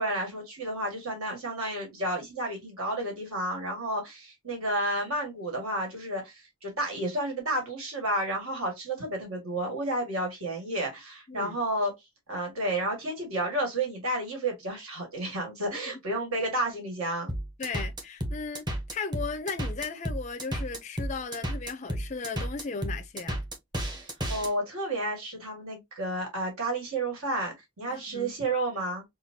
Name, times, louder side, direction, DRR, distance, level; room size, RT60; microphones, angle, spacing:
voice 1, 0.0-11.9 12.3-17.3 24.0-29.0, right 1 dB, 80° right, 1.9 m, -31 dB
sound 1, 17.3-24.5, equal, 20° right, 0.7 m, -32 dB
voice 2, 17.6-18.6 18.9-23.4 27.9-28.3, left 4 dB, 30° left, 0.4 m, -36 dB
5.7 x 2.3 x 2.6 m
head